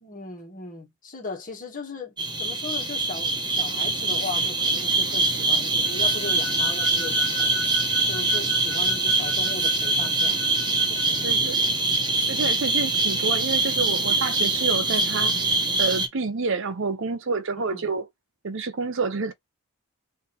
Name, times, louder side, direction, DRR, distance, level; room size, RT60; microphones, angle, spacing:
voice 1, 0.0-7.6 8.1-11.7 12.3-12.7 17.6-17.9, left 3 dB, 40° left, 1.8 m, -38 dB
sound 1, 2.2-16.1, right 3 dB, 20° right, 1.1 m, -24 dB
Bowed string instrument, 5.8-11.3, left 5 dB, 55° left, 1.6 m, -37 dB
voice 2, 11.2-11.6 12.3-15.4 15.8-18.1 18.4-19.3, right 4 dB, 60° right, 0.7 m, -28 dB
3.6 x 2.9 x 4.1 m
head